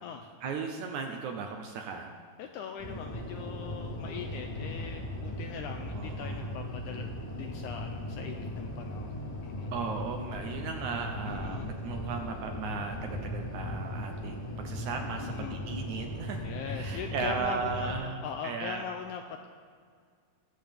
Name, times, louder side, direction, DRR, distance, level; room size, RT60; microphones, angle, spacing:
voice 1, 0.4-2.1 5.9-6.5 9.7-18.9, right 5 dB, 75° right, 4 dB, 1.9 m, -36 dB
voice 2, 2.4-9.1 9.4-9.7 11.3-11.7 15.2-15.6 16.4-17.9 18.2-19.5, left 7 dB, 80° left, 5 dB, 1.8 m, -40 dB
sound 1, 2.8-17.9, left 1 dB, 35° left, 1.9 m, -38 dB
20.5 x 7.8 x 3.6 m, 2.1 s
omnidirectional pair, 4.0 m